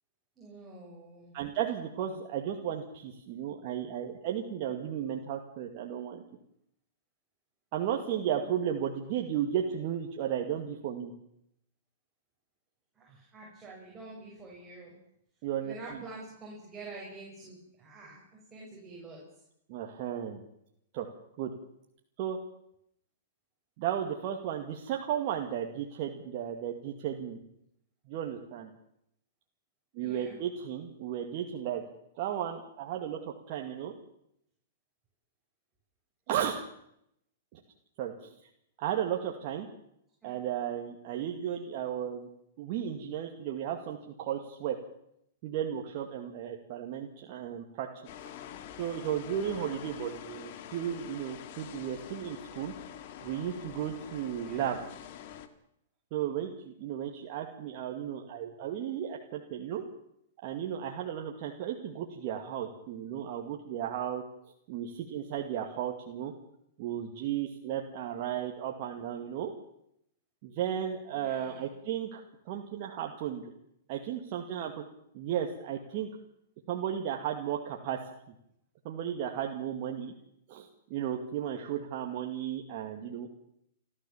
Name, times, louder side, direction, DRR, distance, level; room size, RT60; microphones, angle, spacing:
voice 1, 0.4-1.4 13.0-14.9 15.6-19.2 30.0-30.4 40.2-40.4 54.4-54.8 71.1-71.7, right 3 dB, 15° right, -4 dB, 7.4 m, -47 dB
voice 2, 1.3-6.2 7.7-11.1 15.4-16.0 19.7-20.4 20.9-21.1 21.4-21.5 22.2-22.4 23.8-27.4 28.1-28.7 29.9-31.8 32.2-33.2 33.5-33.9 36.3-36.6 37.5-37.6 38.0-38.3 38.8-39.7 40.2-42.3 42.6-44.8 45.4-47.9 48.8-52.7 53.2-54.8 56.1-59.8 60.4-64.2 64.7-66.3 66.8-69.5 70.4-73.5 73.9-74.8 75.1-76.1 76.7-78.0 78.3-78.4 78.8-80.1 80.5-83.3, right 9 dB, 45° right, 1 dB, 2.2 m, -34 dB
sound 1, 48.1-55.5, left 10 dB, 55° left, 2.1 m, -46 dB
28.5 x 13.0 x 7.3 m, 0.77 s
hypercardioid pair, 130°, 0 cm